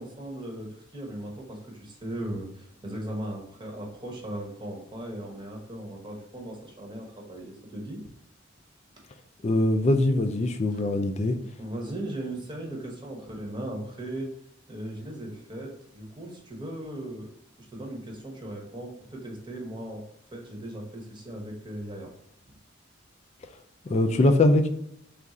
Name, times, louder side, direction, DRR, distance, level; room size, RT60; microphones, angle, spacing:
voice 1, 0.0-8.0 10.7-10.8 11.6-14.3 14.7-17.3 17.7-20.0 20.3-22.1, right 1 dB, 25° right, -1 dB, 0.9 m, -38 dB
voice 2, 9.4-11.4 23.8-24.7, left 2 dB, 35° left, 7 dB, 0.3 m, -22 dB
3.6 x 2.4 x 4.1 m, 0.73 s
head